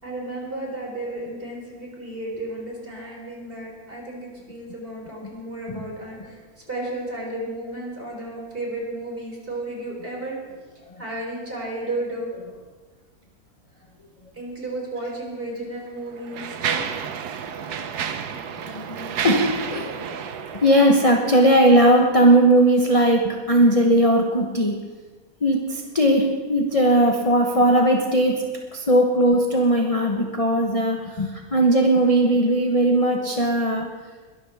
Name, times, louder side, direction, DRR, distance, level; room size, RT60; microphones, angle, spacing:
voice 1, 0.0-6.4 6.7-10.4 11.0-12.3 14.3-16.9, right 1 dB, 35° right, -2 dB, 4.3 m, -33 dB
Mechanisms, 15.0-15.1 15.8-21.6, right 7 dB, 90° right, 1.4 m, -31 dB
voice 2, 18.5-20.2 20.6-24.9 25.4-33.9, right 1 dB, 25° left, 1 dB, 1.0 m, -19 dB
22.0 x 13.0 x 3.5 m, 1.4 s
omnidirectional pair, 1.6 m